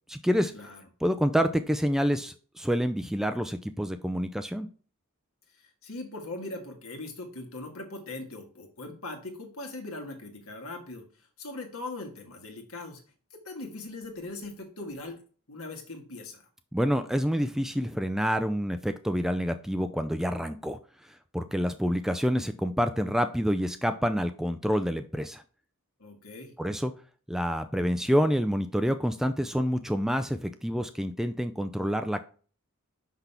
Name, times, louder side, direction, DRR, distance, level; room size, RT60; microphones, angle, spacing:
voice 1, 0.1-0.5 1.0-4.7 16.7-25.4 26.6-26.9 27.3-32.2, equal, ahead, 9 dB, 0.3 m, -28 dB
voice 2, 5.8-11.0 11.4-13.0 13.4-15.2 15.5-16.5 26.0-26.5, left 2 dB, 70° left, 4 dB, 1.7 m, -40 dB
6.0 x 5.7 x 3.4 m, 0.40 s
head